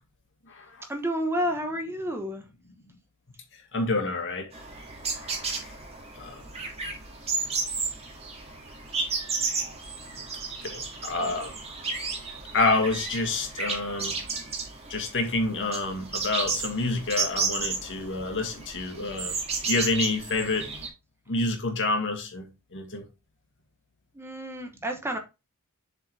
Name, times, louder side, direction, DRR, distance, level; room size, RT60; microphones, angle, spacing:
voice 1, 0.9-2.4 24.1-25.2, equal, 10° right, 1.0 m, -30 dB
voice 2, 3.7-4.4 6.2-6.3 10.6-11.5 12.5-14.1 14.9-19.3 19.7-20.6 21.3-22.4 22.7-23.0, left 3 dB, 60° left, 2.0 m, -27 dB
sound 1, 4.5-20.9, right 4 dB, 30° right, 2.0 m, -33 dB
7.0 x 5.4 x 3.3 m
head